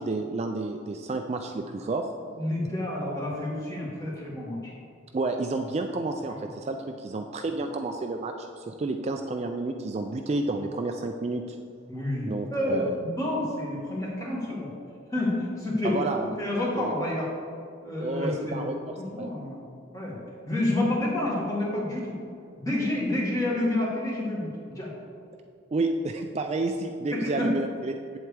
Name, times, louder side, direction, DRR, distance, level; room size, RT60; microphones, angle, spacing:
voice 1, 0.0-2.1 5.1-11.6 12.3-13.0 15.8-16.4 16.7-16.9 18.0-19.3 25.7-27.9, right 3 dB, 35° right, 5 dB, 0.3 m, -30 dB
voice 2, 2.3-4.7 7.5-7.6 11.9-14.7 15.1-16.1 16.4-17.3 17.8-19.6 19.9-20.2 20.5-22.2 22.6-24.9 27.1-27.5, left 1 dB, 15° left, -5 dB, 2.0 m, -29 dB
8.2 x 7.7 x 3.4 m, 2.4 s
head